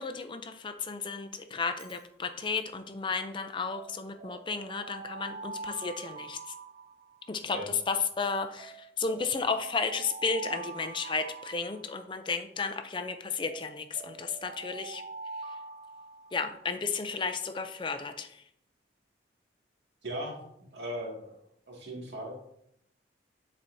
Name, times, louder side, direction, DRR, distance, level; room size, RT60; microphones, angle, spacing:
voice 1, 0.0-6.5 7.3-15.0 15.5-15.6 16.3-18.4, left 4 dB, 25° left, 7 dB, 0.4 m, -33 dB
Alarm, 1.6-2.0 3.7-7.5 8.6-12.4 13.5-16.7, right 3 dB, 45° right, 0.6 m, -45 dB
voice 2, 20.0-20.4 20.7-21.4 21.7-22.3, equal, 70° right, -2 dB, 2.1 m, -37 dB
10.5 x 4.3 x 2.7 m, 0.73 s
head